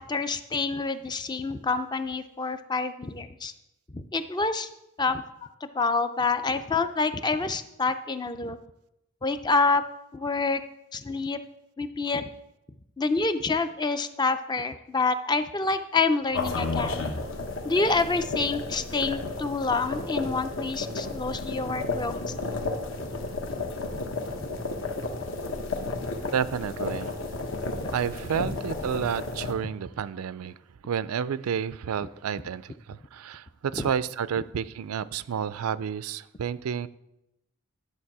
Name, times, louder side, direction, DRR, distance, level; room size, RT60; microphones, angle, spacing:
voice 1, 0.0-3.5 3.9-4.7 5.0-5.2 5.6-8.6 9.2-9.8 10.1-10.6 10.9-11.4 11.8-12.3 13.0-17.0 17.6-22.3 27.8-27.9 28.4-28.6 33.7-33.9, left 3 dB, 20° left, 10 dB, 0.4 m, -27 dB
sound 1, 16.3-29.5, left 3 dB, 65° left, 1.2 m, -32 dB
voice 2, 26.3-27.1 27.9-30.5 30.8-36.9, right 7 dB, 85° right, 17 dB, 0.4 m, -30 dB
11.5 x 6.5 x 4.7 m, 0.88 s
head